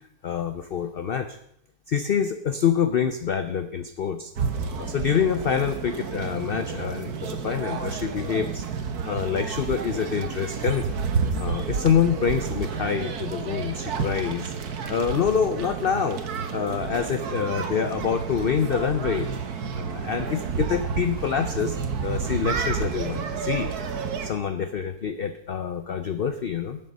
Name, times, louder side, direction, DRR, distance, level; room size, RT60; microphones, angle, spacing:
voice 1, 0.2-1.4 1.9-4.3 4.7-8.7 9.0-11.0 11.4-14.5 14.9-16.2 16.5-19.3 19.8-21.8 22.0-23.7 24.2-26.8, left 7 dB, 55° left, 9 dB, 0.7 m, -26 dB
sound 1, 4.4-24.3, right 5 dB, 85° right, 1.7 m, -30 dB
14.0 x 7.7 x 5.4 m, 0.75 s
omnidirectional pair, 1.6 m